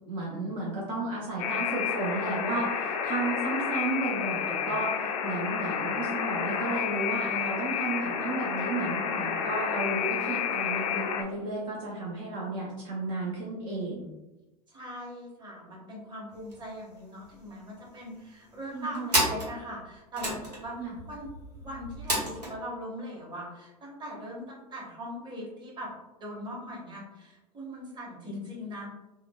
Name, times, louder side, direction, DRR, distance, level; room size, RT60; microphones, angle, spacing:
voice 1, 0.1-14.1 18.7-19.1 20.8-20.9, right 2 dB, 50° right, -4 dB, 0.7 m, -33 dB
Alarm, 1.4-11.2, left 7 dB, 60° left, 0.4 m, -30 dB
voice 2, 14.7-21.3 21.6-25.9 26.2-28.9, equal, 20° right, -3 dB, 1.1 m, -40 dB
sound 1, 16.3-16.6 16.9-17.0 17.2-17.9 18.5-22.5, right 1 dB, 85° right, 1.0 m, -31 dB
3.7 x 2.2 x 2.3 m, 1.0 s
figure-of-eight pair, 85°, 20 cm